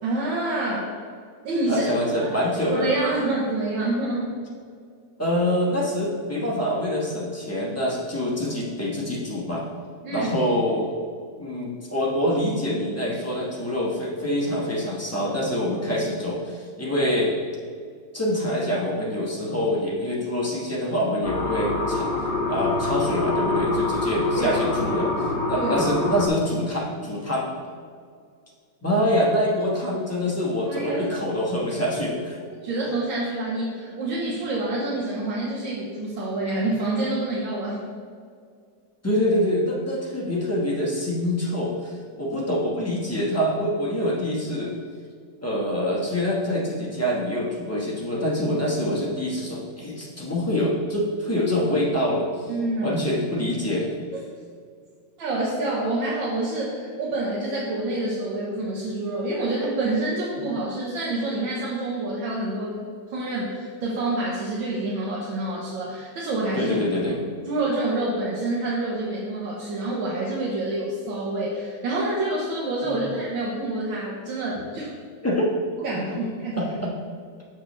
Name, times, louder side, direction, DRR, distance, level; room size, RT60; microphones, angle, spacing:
voice 1, 0.0-0.9 1.4-1.9 2.7-4.4 10.0-10.3 15.9-16.0 24.4-25.1 25.6-25.9 30.7-31.1 32.6-37.8 52.5-53.0 55.2-66.7 67.1-67.2 67.5-74.9 75.8-76.8, right 2 dB, 85° right, -5 dB, 1.7 m, -27 dB
voice 2, 1.7-2.9 5.2-9.7 10.1-10.9 11.4-17.3 18.1-22.1 22.5-25.1 25.5-27.5 28.8-32.4 39.0-44.7 45.4-52.5 52.8-53.9 66.5-67.2 72.8-73.1 75.2-75.5 76.1-76.2 76.6-76.9, equal, 10° left, -5 dB, 0.7 m, -25 dB
sound 1, 21.2-26.3, left 3 dB, 55° left, 0.5 m, -25 dB
7.1 x 5.9 x 3.1 m, 2.1 s
omnidirectional pair, 2.1 m